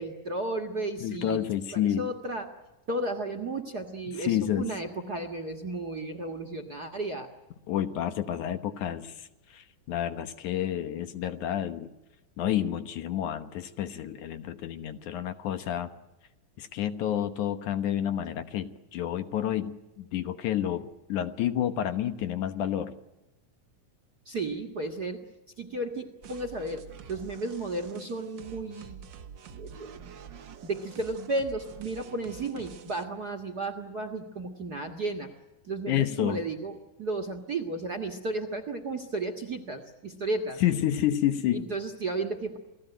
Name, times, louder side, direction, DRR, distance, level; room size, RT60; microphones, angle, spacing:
voice 1, 0.0-1.5 1.7-2.5 2.9-7.3 24.2-25.2 25.6-26.8 27.1-29.0 29.5-30.1 30.6-35.3 35.6-40.6 41.5-42.6, right 2 dB, 40° right, 9 dB, 1.5 m, -33 dB
voice 2, 1.0-2.1 4.2-4.7 7.7-11.9 12.4-15.9 16.6-22.9 35.9-36.4 40.6-41.7, left 11 dB, 70° left, 10 dB, 2.4 m, -29 dB
sound 1, 26.2-33.1, right 7 dB, 75° right, 1.0 m, -47 dB
29.0 x 18.5 x 9.1 m, 1.0 s
omnidirectional pair, 3.9 m